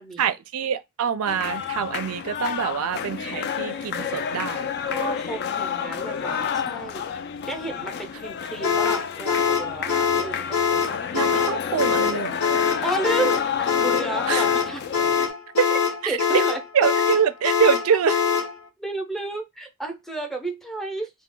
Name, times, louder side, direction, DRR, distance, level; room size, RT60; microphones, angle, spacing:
voice 1, 0.2-4.7 11.1-12.4 14.3-14.4 15.6-15.7 16.0-16.4 16.7-18.2, right 7 dB, 80° right, 0.4 m, -24 dB
sound 1, 1.3-15.3, left 7 dB, 50° left, 0.3 m, -30 dB
voice 2, 4.9-7.1 7.5-11.0 12.6-14.8 15.7-15.8 16.1-16.6 18.8-21.1, right 2 dB, ahead, 0.6 m, -32 dB
sound 2, 8.6-18.6, left 6 dB, 70° left, 0.8 m, -23 dB
2.3 x 2.1 x 3.7 m
head